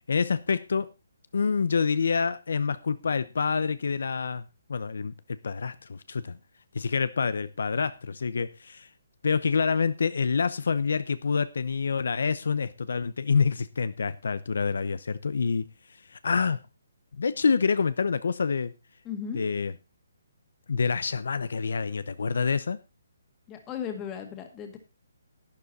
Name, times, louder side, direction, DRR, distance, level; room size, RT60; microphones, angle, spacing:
voice 1, 0.1-0.9 1.3-5.1 5.4-6.4 6.7-8.9 9.2-15.7 16.1-16.6 17.2-18.7 19.3-19.7 20.7-22.8, left 5 dB, 70° left, 0.8 m, -27 dB
voice 2, 19.0-19.4 23.5-24.8, left 7 dB, 15° left, 1.9 m, -36 dB
12.0 x 9.6 x 4.1 m
hypercardioid pair, 170°, 0 cm